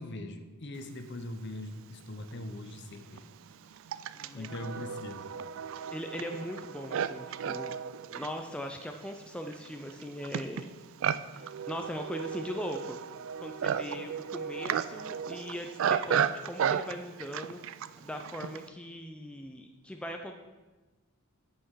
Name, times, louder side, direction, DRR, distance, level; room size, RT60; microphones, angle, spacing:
voice 1, 0.0-3.3 4.3-5.3, left 1 dB, 50° left, 8 dB, 0.8 m, -41 dB
Livestock farm animals working animals, 1.9-2.0 2.8-18.7, right 8 dB, 60° right, 0.3 m, -34 dB
voice 2, 4.2-4.5 5.9-7.7 8.1-10.7 11.3-13.0 13.4-20.3, equal, 5° left, 3 dB, 0.4 m, -40 dB
8.4 x 5.7 x 6.2 m, 1.2 s
head